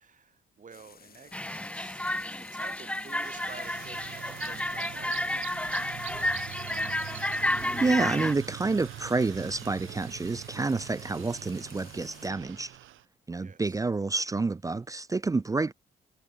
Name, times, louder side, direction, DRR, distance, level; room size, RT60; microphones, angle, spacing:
voice 1, 0.0-6.8 13.4-13.8, right 6 dB, 40° right, 3.7 m, -51 dB
sound 1, 0.7-12.3, left 7 dB, 50° left, 3.5 m, -54 dB
sound 2, 1.3-8.3, left 1 dB, 5° left, 1.0 m, -31 dB
sound 3, 3.1-13.0, right 15 dB, 85° right, 3.7 m, -43 dB
voice 2, 7.8-12.7 13.3-15.7, right 3 dB, 15° right, 0.4 m, -29 dB
cardioid pair, 90°, 20 cm